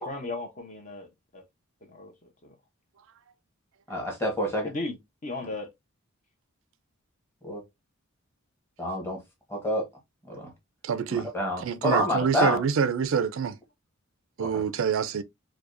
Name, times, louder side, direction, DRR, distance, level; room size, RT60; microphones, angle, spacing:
voice 1, 0.1-1.4 1.9-2.1 2.4-2.5 4.6-5.0 5.2-5.7, left 2 dB, 35° left, 0.6 m, -36 dB
voice 2, 3.9-4.7 7.4-7.6 8.8-9.2 9.5-9.9 10.3-10.5 11.1-12.6 14.4-14.6, equal, 10° left, 1.2 m, -28 dB
voice 3, 10.8-11.3 11.6-13.6 14.4-15.2, right 6 dB, 60° right, 0.3 m, -26 dB
4.7 x 2.2 x 2.5 m
head